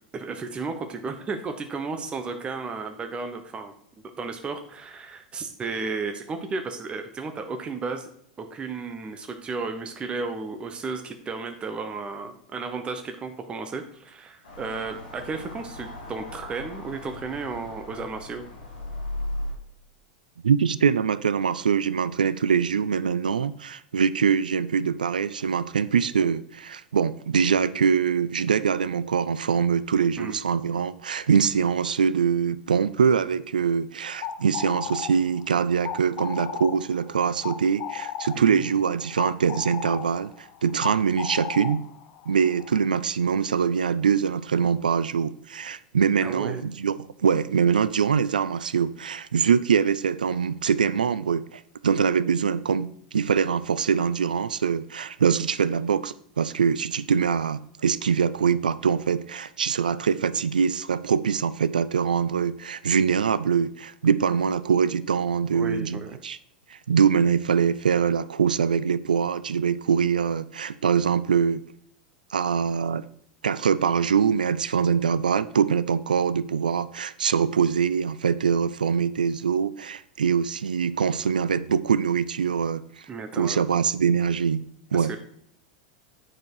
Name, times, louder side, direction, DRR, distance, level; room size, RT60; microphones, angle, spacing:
voice 1, 0.1-3.7 4.2-8.1 8.4-18.4 30.2-30.4 38.3-38.7 46.2-46.6 65.5-66.2 83.1-83.6 84.9-85.2, right 4 dB, 25° right, 1.0 m, -33 dB
sound 1, 14.4-19.5, left 1 dB, 85° left, 3.3 m, -37 dB
voice 2, 20.4-41.8 42.3-66.4 66.7-71.6 72.3-73.0 73.4-83.1 83.3-84.6 84.9-85.1, right 7 dB, 85° right, 0.3 m, -23 dB
sound 2, 34.0-42.9, left 9 dB, 50° left, 0.8 m, -36 dB
9.7 x 4.6 x 4.7 m
hypercardioid pair, 95°, 4 cm